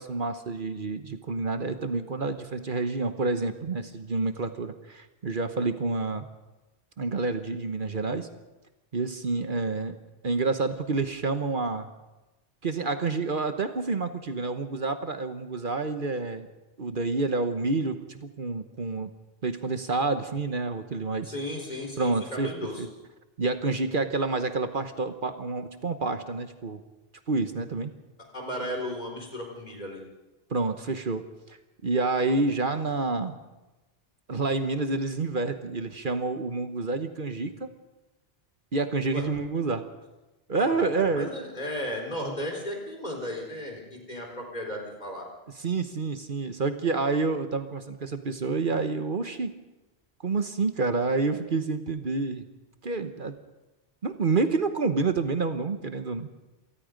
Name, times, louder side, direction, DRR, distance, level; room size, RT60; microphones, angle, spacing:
voice 1, 0.0-6.3 7.0-8.3 8.9-10.0 10.2-11.9 12.6-16.5 16.8-19.1 19.4-21.3 22.0-22.5 22.8-22.9 23.4-26.8 27.3-27.9 30.5-31.6 31.8-33.4 34.3-37.7 38.7-39.9 40.5-41.3 45.6-49.5 50.2-52.5 52.8-53.3 54.0-56.3, right 3 dB, 55° right, 8 dB, 1.2 m, -28 dB
voice 2, 21.2-22.9 28.3-30.0 39.1-39.3 40.6-45.3, left 1 dB, 45° left, 1 dB, 4.5 m, -35 dB
27.0 x 19.0 x 5.2 m, 1.1 s
omnidirectional pair, 1.1 m